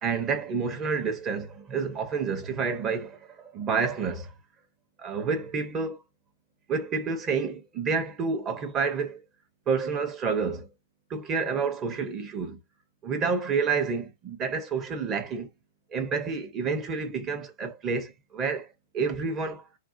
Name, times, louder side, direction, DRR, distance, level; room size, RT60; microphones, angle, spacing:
voice 1, 0.0-4.3 5.0-6.0 6.7-9.2 9.7-10.7 11.1-12.6 13.0-15.5 15.9-18.7 18.9-19.7, right 5 dB, 25° right, 0.8 m, -29 dB
2.6 x 2.1 x 2.4 m
hypercardioid pair, 110°, 0 cm